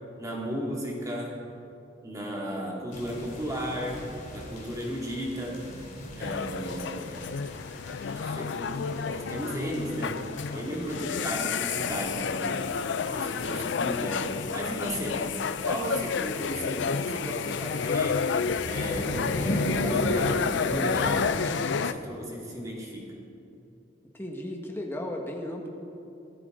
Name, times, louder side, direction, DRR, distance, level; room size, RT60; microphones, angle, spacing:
voice 1, 0.2-1.4 2.0-5.6 6.2-7.4 8.1-10.2 10.5-12.7 13.1-18.2 18.6-23.1, equal, 20° right, -3 dB, 2.5 m, -35 dB
sound 1, 2.9-21.2, equal, 45° left, 2.8 m, -38 dB
sound 2, 6.2-21.9, left 5 dB, 70° left, 0.4 m, -30 dB
voice 2, 10.5-11.2 24.1-25.7, left 1 dB, 10° left, 1 dB, 1.6 m, -36 dB
24.0 x 13.0 x 3.9 m, 2.7 s
head